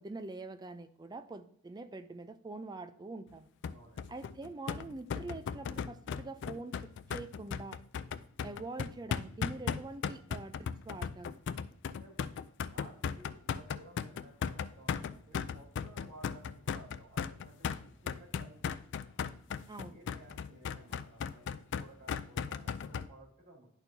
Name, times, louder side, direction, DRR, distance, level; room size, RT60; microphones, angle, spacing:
voice 1, 0.0-3.5 4.1-7.8 8.4-11.4 19.7-20.0, right 3 dB, 20° right, 10 dB, 0.4 m, -45 dB
sound 1, 3.6-23.1, left 7 dB, 60° left, 0.3 m, -37 dB
voice 2, 3.7-4.1 11.9-12.2 12.6-18.6 19.8-23.7, right 1 dB, 45° right, -4 dB, 3.0 m, -56 dB
10.5 x 4.4 x 2.7 m, 0.69 s
head